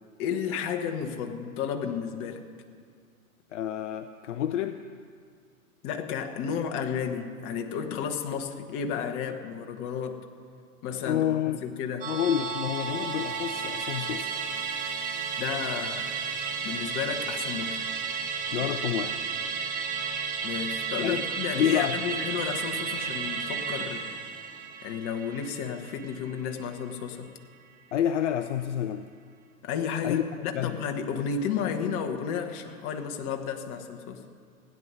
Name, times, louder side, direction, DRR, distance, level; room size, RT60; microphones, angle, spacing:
voice 1, 0.2-2.4 5.8-10.2 10.8-11.3 11.6-12.1 15.3-16.1 16.6-17.8 18.6-18.7 20.4-24.0 24.8-27.3 29.6-34.2, left 7 dB, 30° left, 5 dB, 1.3 m, -32 dB
voice 2, 3.5-4.8 11.0-11.7 12.1-14.7 18.5-19.2 21.0-21.2 21.5-22.0 27.9-29.1 30.0-30.2 30.5-30.8, left 10 dB, 55° left, 9 dB, 0.7 m, -29 dB
Musical instrument, 12.0-26.7 27.0-27.1, right 5 dB, 20° right, 1.3 m, -33 dB
16.0 x 9.8 x 6.2 m, 2.2 s
hypercardioid pair, 120°, 43 cm